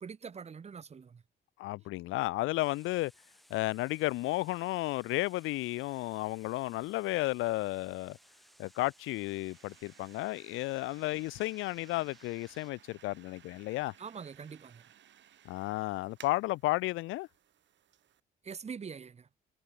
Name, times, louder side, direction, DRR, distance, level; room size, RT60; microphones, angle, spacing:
voice 1, 0.0-1.2 14.0-14.8 18.4-19.3, right 6 dB, 35° right, 0.9 m, -44 dB
voice 2, 1.6-3.1 3.5-8.2 8.6-13.9 15.5-17.3, left 19 dB, 90° left, 0.5 m, -33 dB
sound 1, 2.6-12.7, equal, ahead, 6.3 m, -62 dB
sound 2, 8.1-18.2, right 10 dB, 65° right, 2.6 m, -60 dB
cardioid pair, 90°, 20 cm